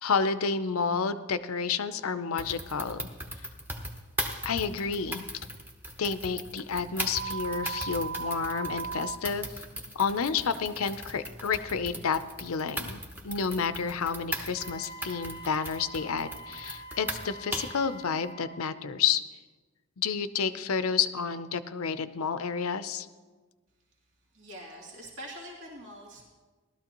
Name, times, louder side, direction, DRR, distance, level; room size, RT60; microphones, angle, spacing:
voice 1, 0.0-3.0 4.4-5.2 6.0-9.6 9.9-19.2 20.0-23.1, left 6 dB, 75° left, 12 dB, 0.6 m, -30 dB
sound 1, 2.4-17.8, equal, 10° right, 1.0 m, -38 dB
sound 2, 7.1-9.2, right 6 dB, 30° right, 0.4 m, -35 dB
Wind instrument woodwind instrument, 14.6-18.7, right 1 dB, 20° left, 0.5 m, -45 dB
voice 2, 24.3-26.2, equal, 70° right, -3 dB, 2.4 m, -44 dB
18.5 x 13.0 x 3.0 m, 1.3 s
head